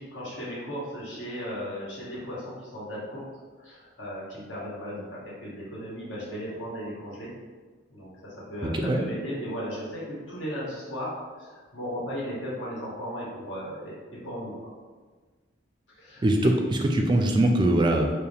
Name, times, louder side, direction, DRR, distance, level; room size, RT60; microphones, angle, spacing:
voice 1, 0.0-3.3 3.6-7.3 7.9-13.9 14.2-14.7 15.9-16.3, equal, 85° left, -7 dB, 1.5 m, -36 dB
voice 2, 8.6-9.0 16.2-18.1, right 1 dB, 25° right, 2 dB, 0.3 m, -22 dB
4.8 x 2.1 x 3.3 m, 1.4 s
head